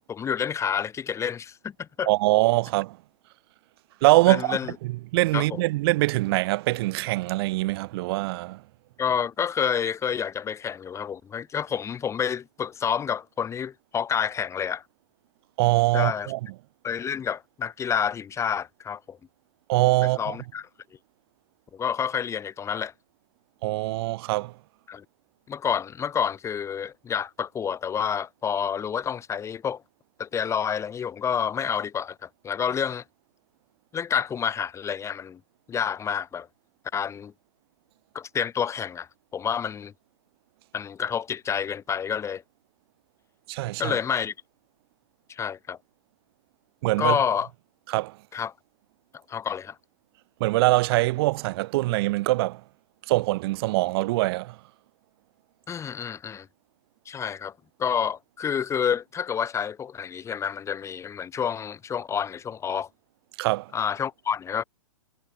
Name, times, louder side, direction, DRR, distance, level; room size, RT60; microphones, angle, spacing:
voice 1, 0.1-2.1 4.3-4.8 5.3-5.6 9.0-14.8 15.9-16.3 16.8-19.2 20.0-20.7 21.7-22.9 24.9-25.0 25.5-29.8 30.2-33.0 33.9-35.4 35.7-36.5 36.9-37.3 38.1-39.9 40.7-42.4 43.8-44.3 45.3-45.8 47.0-47.5 48.3-48.5 49.3-49.8 55.7-56.5 57.1-57.5 57.8-62.9 63.7-64.6, left 7 dB, 15° left, 1.8 m, -29 dB
voice 2, 2.1-3.0 4.0-4.6 5.1-8.6 15.6-16.4 19.7-20.4 23.6-24.5 43.5-44.0 46.8-47.2 47.9-48.1 50.4-52.6 53.1-54.5 63.4-63.7, right 20 dB, 45° right, 2.2 m, -23 dB
hypercardioid pair, 125°, 17 cm